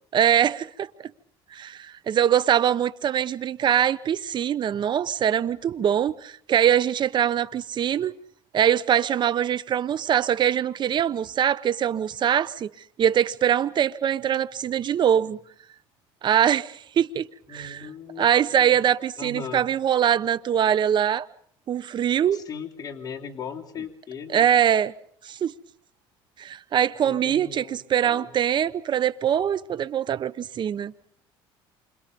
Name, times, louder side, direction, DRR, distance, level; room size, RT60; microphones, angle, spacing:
voice 1, 0.1-0.9 1.5-8.2 8.5-12.7 13.0-15.4 16.2-17.8 18.2-21.3 21.7-22.4 24.3-24.9 25.2-25.5 26.4-30.9, right 9 dB, 40° right, 1.1 m, -23 dB
voice 2, 17.5-18.8 19.2-19.7 22.3-24.5 27.0-28.3, left 6 dB, 35° left, 3.4 m, -38 dB
28.0 x 26.0 x 5.4 m
supercardioid pair, 105°, 12 cm